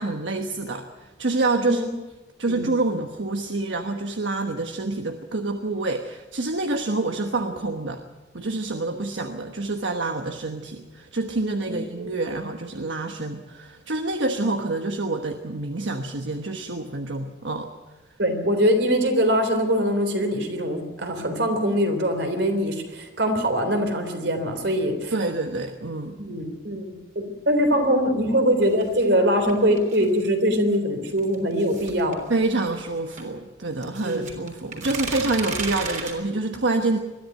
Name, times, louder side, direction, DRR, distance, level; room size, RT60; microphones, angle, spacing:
voice 1, 0.0-1.8 2.4-8.0 8.3-17.7 25.1-26.2 32.3-37.0, right 2 dB, 90° right, 5 dB, 1.2 m, -27 dB
voice 2, 11.7-12.1 18.2-25.1 26.2-32.2 34.0-34.2, equal, 70° right, 6 dB, 3.5 m, -23 dB
sound 1, 28.6-30.2 31.2-33.3 33.8-36.1, right 4 dB, 40° right, 3.4 m, -34 dB
21.5 x 13.5 x 9.1 m, 1.2 s
head